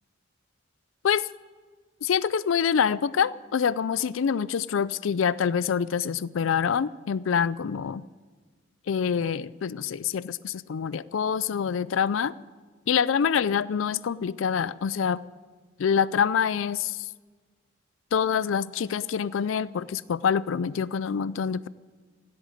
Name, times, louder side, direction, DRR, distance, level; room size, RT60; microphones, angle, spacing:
voice 1, 2.0-8.0 8.9-12.3 12.9-15.2 15.8-17.1 18.1-21.7, left 7 dB, 85° left, 18 dB, 0.4 m, -26 dB
16.5 x 8.8 x 9.1 m, 1.5 s
head